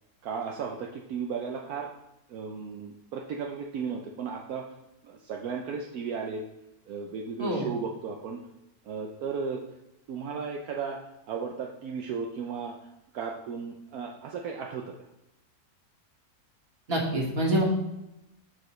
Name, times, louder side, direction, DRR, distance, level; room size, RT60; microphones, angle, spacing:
voice 1, 0.2-1.9 2.3-4.6 5.0-6.4 6.9-8.4 8.9-9.6 10.1-11.0 11.3-12.7 13.1-15.1, right 6 dB, 75° right, 1 dB, 1.2 m, -35 dB
voice 2, 16.9-17.6, right 1 dB, 40° right, -2 dB, 2.0 m, -26 dB
13.0 x 5.0 x 3.1 m, 0.91 s
omnidirectional pair, 1.6 m